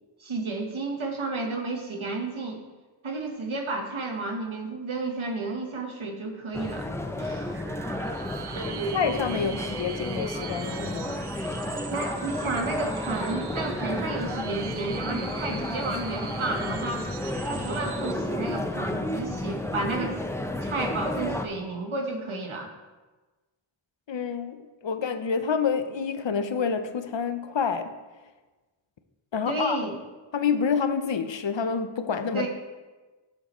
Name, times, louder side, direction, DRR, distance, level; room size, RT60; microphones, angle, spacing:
voice 1, 0.2-2.6 3.0-6.9 7.2-7.6 8.5-9.0 9.3-9.5 11.9-17.1 17.5-20.2 20.6-22.7 29.4-30.0 32.3-32.5, right 3 dB, 75° right, 3 dB, 1.3 m, -32 dB
sound 1, 6.5-21.5, left 1 dB, 5° left, 0.5 m, -32 dB
sound 2, 7.5-18.1, right 7 dB, 55° right, 0.6 m, -40 dB
voice 2, 8.7-11.1 15.2-15.6 24.1-27.9 29.3-29.8 30.3-32.5, left 6 dB, 65° left, 10 dB, 0.7 m, -28 dB
10.5 x 7.3 x 3.0 m, 1.2 s
wide cardioid pair, 70°, 49 cm